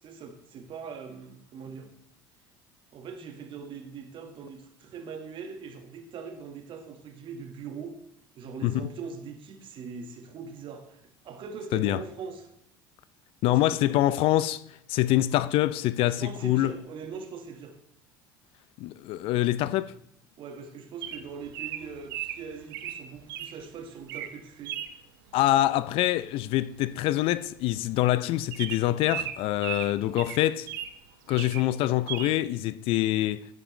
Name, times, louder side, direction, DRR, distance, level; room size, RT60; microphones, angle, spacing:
voice 1, 0.0-1.9 2.9-8.0 8.4-12.5 13.5-14.2 16.0-17.8 20.4-25.0, right 5 dB, 50° right, 1.6 m, -41 dB
voice 2, 13.4-14.6 14.9-16.7 18.8-19.9 25.3-30.7 31.3-33.5, left 15 dB, 60° left, 0.5 m, -25 dB
Bird vocalization bird call bird song, 21.0-23.5 24.0-24.3 24.7-24.9 26.4-26.7 26.9-27.0 27.3-27.5 27.9-28.0 28.5-31.0 31.3-31.7 32.1-32.3, right 11 dB, 80° right, 0.7 m, -36 dB
10.5 x 9.0 x 3.2 m
hypercardioid pair, 75°, 11 cm